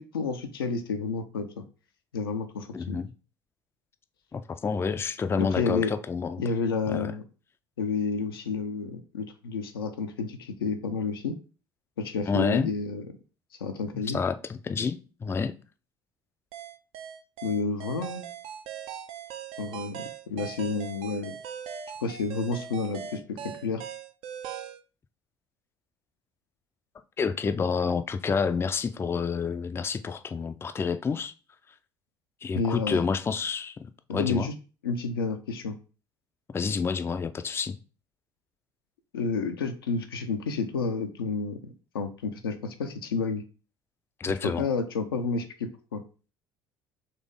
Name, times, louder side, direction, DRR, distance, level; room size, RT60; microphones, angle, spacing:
voice 1, 0.0-1.6 2.1-3.0 5.4-5.9 6.4-7.2 7.8-11.4 12.0-13.1 13.6-14.2 17.4-18.2 19.6-21.3 22.0-23.8 32.5-33.0 34.1-34.5 34.8-35.8 39.1-41.6 41.9-43.4 44.4-46.0, left 4 dB, 80° left, 0.5 m, -30 dB
voice 2, 2.7-3.1 4.3-6.4 6.9-7.1 12.3-12.7 14.1-15.6 27.2-31.3 32.4-34.5 36.5-37.8 44.2-44.6, left 5 dB, 20° left, 0.4 m, -29 dB
sound 1, 16.5-24.8, right 9 dB, 55° right, 0.5 m, -40 dB
4.1 x 3.1 x 3.6 m
figure-of-eight pair, 60°, 12 cm